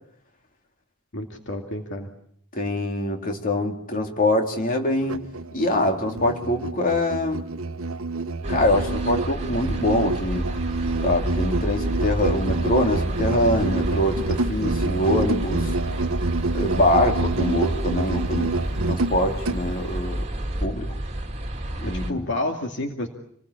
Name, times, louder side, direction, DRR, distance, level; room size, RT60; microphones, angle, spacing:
voice 1, 1.1-2.1 21.9-23.1, left 1 dB, 60° left, 2 dB, 2.6 m, -30 dB
voice 2, 2.5-5.2 5.5-7.5 8.5-10.5 11.0-15.7 16.5-18.5 18.8-20.3 20.6-20.9 21.8-22.3, left 1 dB, 45° left, 2 dB, 3.5 m, -24 dB
Musical instrument, 5.0-19.6, right 3 dB, 80° right, 1.0 m, -28 dB
sound 1, 8.4-22.1, right 1 dB, 35° right, 2.6 m, -30 dB
29.0 x 20.5 x 8.5 m, 0.69 s
head